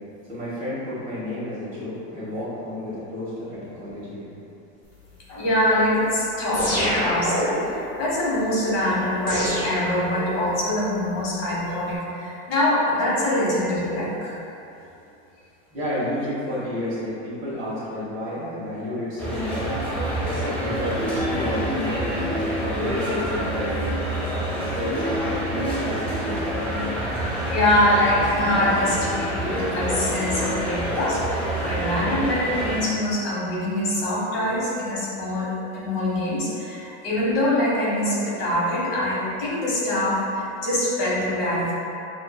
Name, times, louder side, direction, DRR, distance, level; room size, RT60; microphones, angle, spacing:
voice 1, 0.3-4.4 15.7-19.6 20.2-23.8 24.1-26.4, left 1 dB, 25° right, -10 dB, 1.1 m, -31 dB
voice 2, 5.3-14.4 27.5-41.7, left 1 dB, 55° left, -6 dB, 1.1 m, -24 dB
sound 1, 6.5-7.8 9.3-10.6, equal, 35° left, 0.9 m, -26 dB
sound 2, 19.2-32.8, equal, 5° left, 0.6 m, -27 dB
6.1 x 2.5 x 2.2 m, 2.8 s
supercardioid pair, 170°, 34 cm